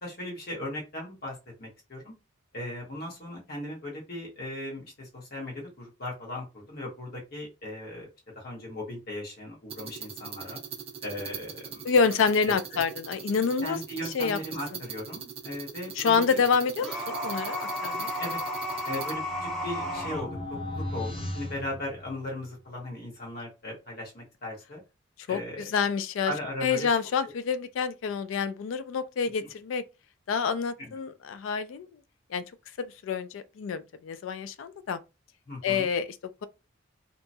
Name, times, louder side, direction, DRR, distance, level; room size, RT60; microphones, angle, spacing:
voice 1, 0.0-2.1 2.5-8.1 8.3-10.6 11.0-11.9 12.5-12.8 13.6-16.4 18.2-18.4 18.9-20.3 20.7-24.8 25.3-25.7 26.2-26.9 29.4-29.5 30.9-31.0 35.5-35.8, left 1 dB, 50° left, 1.2 m, -37 dB
sound 1, 9.7-19.1, right 7 dB, 30° right, 0.4 m, -41 dB
voice 2, 11.8-13.8 14.1-14.4 16.0-18.1 25.3-26.3 26.6-29.8 30.3-31.9 32.3-32.4 32.8-35.0 35.6-36.1, left 5 dB, 80° left, 0.3 m, -27 dB
sound 2, 16.8-20.3, left 1 dB, ahead, 0.9 m, -33 dB
sound 3, 18.6-22.6, left 1 dB, 30° left, 0.6 m, -38 dB
2.8 x 2.2 x 2.6 m
head